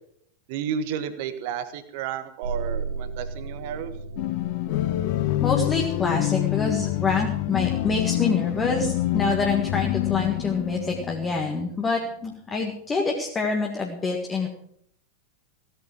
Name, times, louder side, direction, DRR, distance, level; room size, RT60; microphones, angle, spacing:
voice 1, 0.5-3.9, right 8 dB, 50° right, 11 dB, 1.5 m, -32 dB
sound 1, 2.4-6.7, right 4 dB, 65° right, 3.3 m, -35 dB
sound 2, 4.2-11.7, left 15 dB, 45° left, 0.8 m, -26 dB
voice 2, 5.4-14.5, left 4 dB, 20° left, 1 dB, 2.0 m, -26 dB
16.0 x 9.3 x 6.5 m, 0.68 s
figure-of-eight pair, 90°, 0 cm